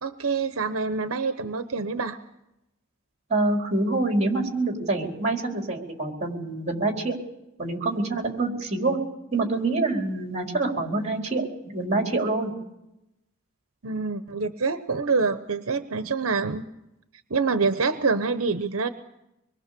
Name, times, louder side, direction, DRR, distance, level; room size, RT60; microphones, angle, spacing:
voice 1, 0.0-2.2 13.8-16.6 17.3-18.9, right 4 dB, 80° right, 9 dB, 1.0 m, -26 dB
voice 2, 3.3-7.1 7.6-9.0 9.3-12.5, right 2 dB, 35° right, 2 dB, 4.5 m, -26 dB
25.0 x 23.0 x 6.9 m, 0.90 s
head